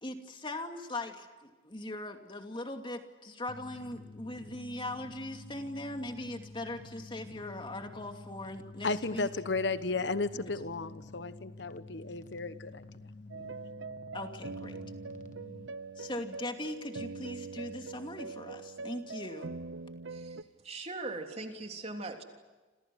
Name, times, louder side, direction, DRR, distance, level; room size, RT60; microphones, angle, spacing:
voice 1, 0.0-9.3 10.3-10.5 14.1-14.8 16.0-19.6, left 1 dB, 25° left, 5 dB, 2.6 m, -40 dB
sound 1, 3.5-15.7, left 2 dB, 40° left, 1.5 m, -50 dB
voice 2, 8.8-12.8, left 3 dB, 65° left, 13 dB, 1.1 m, -34 dB
sound 2, 13.3-20.4, right 4 dB, 80° right, 0.8 m, -43 dB
voice 3, 20.1-22.2, right 2 dB, 35° right, 4 dB, 3.4 m, -40 dB
29.0 x 27.5 x 6.3 m, 1.2 s
head